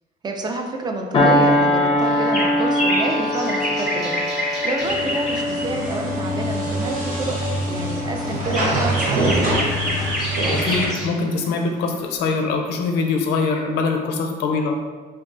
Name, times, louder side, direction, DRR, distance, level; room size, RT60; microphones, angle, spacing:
voice 1, 0.2-7.4 7.7-9.6, right 2 dB, 25° right, 3 dB, 0.4 m, -28 dB
sound 1, 1.1-10.0 10.5-10.7, left 1 dB, 30° left, 0.5 m, -23 dB
sound 2, 2.0-6.1 7.2-7.5 7.9-11.3 11.6-11.7 12.0-12.1, equal, ahead, 0.9 m, -27 dB
sound 3, 4.8-10.9, right 1 dB, 55° right, 0.9 m, -25 dB
voice 2, 10.6-14.8, left 4 dB, 85° left, 3 dB, 0.5 m, -23 dB
3.4 x 2.3 x 2.5 m, 1.4 s
cardioid pair, 110°, 17 cm